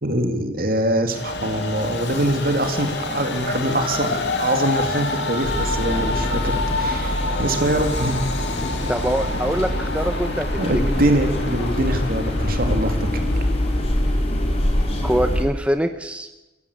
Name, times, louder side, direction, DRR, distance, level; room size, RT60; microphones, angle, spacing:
voice 1, 0.0-8.2 10.6-13.1, right 1 dB, 55° right, 6 dB, 2.9 m, -23 dB
Train, 1.1-14.6, left 2 dB, 75° left, 2.7 m, -28 dB
sound 1, 5.4-15.4, left 1 dB, 35° left, 4.4 m, -24 dB
voice 2, 8.9-10.5 15.0-16.3, equal, 5° right, 7 dB, 0.9 m, -23 dB
23.5 x 15.5 x 8.7 m, 1.1 s
head